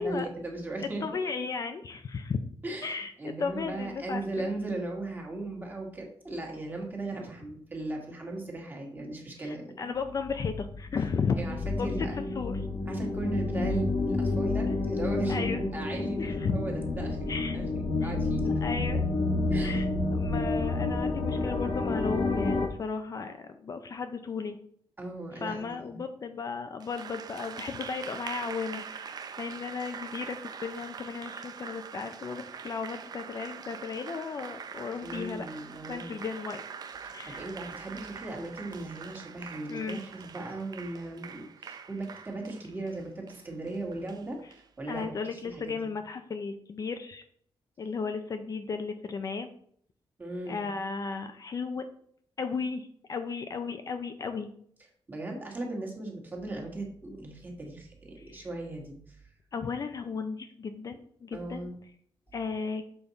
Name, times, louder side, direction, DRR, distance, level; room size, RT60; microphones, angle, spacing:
voice 1, 0.0-1.0 2.6-9.9 11.4-12.2 12.8-18.8 19.5-19.8 25.0-26.0 35.0-36.2 37.0-46.0 50.2-50.7 55.1-59.2 61.3-61.7, right 2 dB, 20° right, 0 dB, 1.6 m, -37 dB
voice 2, 1.0-2.4 2.8-4.5 9.4-11.4 11.8-11.9 12.4-12.6 15.3-15.6 16.2-16.6 17.3-17.6 18.0-18.1 18.4-19.0 19.6-24.6 25.4-35.5 35.9-36.6 37.1-37.4 39.7-40.0 44.9-47.2 47.8-49.5 50.5-51.9 52.4-54.5 58.2-58.5 59.5-61.6 62.3-62.8, left 5 dB, 40° left, 7 dB, 0.5 m, -35 dB
sound 1, 10.1-22.7, left 3 dB, 60° left, 1.3 m, -29 dB
Applause, 26.8-44.6, right 6 dB, 45° right, 0.5 m, -43 dB
7.0 x 5.2 x 4.1 m, 0.63 s
wide cardioid pair, 170°, 10 cm